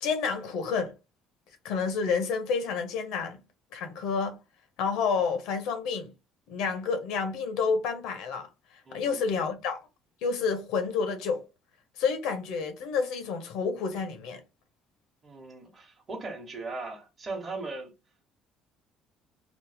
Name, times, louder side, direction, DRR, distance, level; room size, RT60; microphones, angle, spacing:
voice 1, 0.0-0.9 1.6-3.4 3.7-4.4 4.8-6.1 6.5-8.5 8.9-9.8 10.2-11.4 12.0-14.4, left 5 dB, 80° left, 0.8 m, -29 dB
voice 2, 8.9-9.2 15.2-17.9, right 3 dB, 30° right, 0.9 m, -38 dB
3.0 x 2.0 x 3.4 m
cardioid pair, 110°, 0 cm